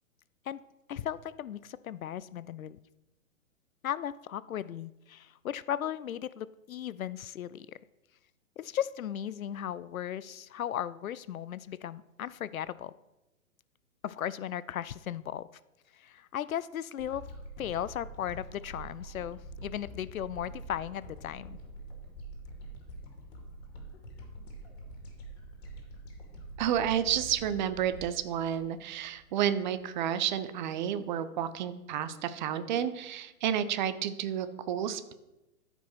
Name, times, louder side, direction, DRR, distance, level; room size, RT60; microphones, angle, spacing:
voice 1, 0.9-2.8 3.8-7.8 8.6-12.9 14.0-15.5 15.9-17.2 17.6-21.6, left 10 dB, 75° left, 17 dB, 0.5 m, -36 dB
sound 1, 17.0-29.3 29.8-29.9, right 1 dB, 45° left, 2.6 m, -46 dB
voice 2, 26.6-35.1, right 9 dB, 35° right, 12 dB, 0.7 m, -31 dB
13.5 x 5.4 x 4.5 m, 0.98 s
figure-of-eight pair, 120°, 42 cm